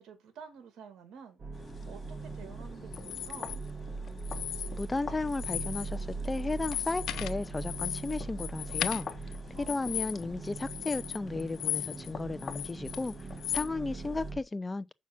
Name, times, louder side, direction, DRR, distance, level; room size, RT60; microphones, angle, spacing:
voice 1, 0.0-3.6 9.5-10.1, right 6 dB, 75° right, 2.2 m, -50 dB
sound 1, 1.4-14.4, right 4 dB, 35° right, 1.4 m, -41 dB
sound 2, 1.5-14.3, left 5 dB, 40° left, 1.4 m, -48 dB
sound 3, 2.9-3.6 4.2-5.0 5.3-5.9 6.2-12.1 12.4-13.7, left 12 dB, 80° left, 0.7 m, -37 dB
voice 2, 4.8-9.1 9.6-13.2 13.5-14.9, left 3 dB, 20° left, 0.6 m, -34 dB
7.2 x 5.8 x 6.0 m
cardioid pair, 90°, 0 cm